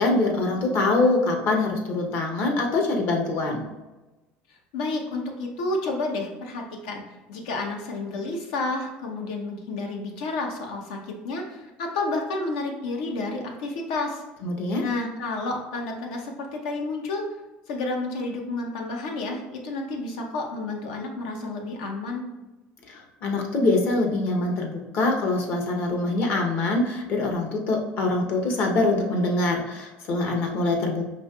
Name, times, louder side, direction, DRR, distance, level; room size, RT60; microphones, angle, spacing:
voice 1, 0.0-3.6 14.4-14.9 22.9-31.0, left 2 dB, 55° left, 2 dB, 0.8 m, -24 dB
voice 2, 4.7-7.0 7.3-14.2 14.8-17.2 17.7-22.3, left 2 dB, 90° left, 2 dB, 0.7 m, -30 dB
5.1 x 2.8 x 2.3 m, 1.1 s
supercardioid pair, 115°, 4 cm